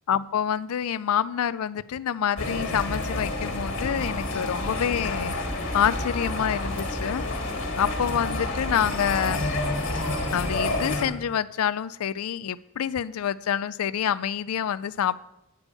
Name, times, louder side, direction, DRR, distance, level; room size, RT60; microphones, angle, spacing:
voice 1, 0.1-5.3 5.7-7.3 7.8-9.5 10.3-15.2, left 9 dB, 85° left, 17 dB, 0.4 m, -27 dB
sound 1, 2.4-11.1, left 2 dB, 55° left, 1.9 m, -29 dB
9.9 x 5.3 x 8.2 m, 0.84 s
head